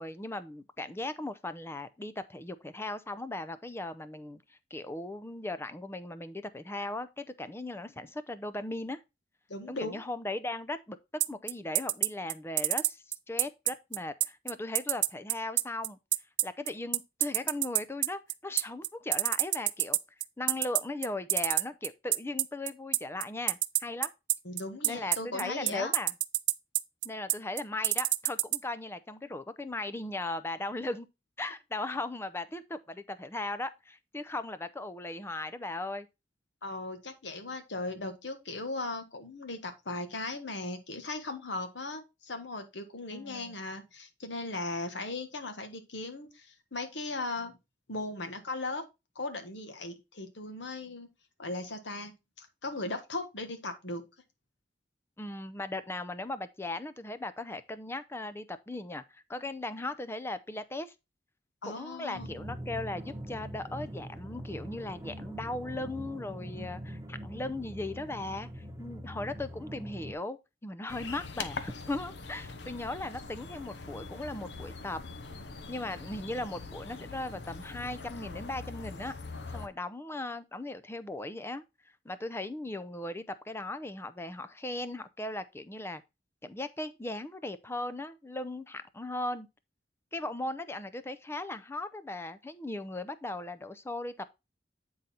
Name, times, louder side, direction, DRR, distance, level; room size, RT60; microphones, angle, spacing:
voice 1, 0.0-9.0 9.7-11.0 11.3-16.0 16.4-20.0 20.4-24.1 24.8-26.1 27.0-31.1 31.4-36.1 43.1-43.6 55.2-60.9 61.6-75.0 75.7-79.1 79.5-81.6 82.0-86.0 86.4-89.5 90.1-94.3, left 2 dB, 15° left, 0.5 m, -38 dB
voice 2, 9.5-10.0 24.4-25.9 36.6-47.5 47.9-48.8 49.1-51.1 51.4-52.1 52.4-54.0 61.6-62.3, left 2 dB, 85° left, 1.4 m, -38 dB
sound 1, 11.2-28.6, right 18 dB, 80° right, 0.4 m, -27 dB
sound 2, 62.1-70.1, equal, 15° right, 1.1 m, -43 dB
sound 3, 70.9-79.7, left 4 dB, 70° left, 0.8 m, -43 dB
9.0 x 4.0 x 4.2 m
head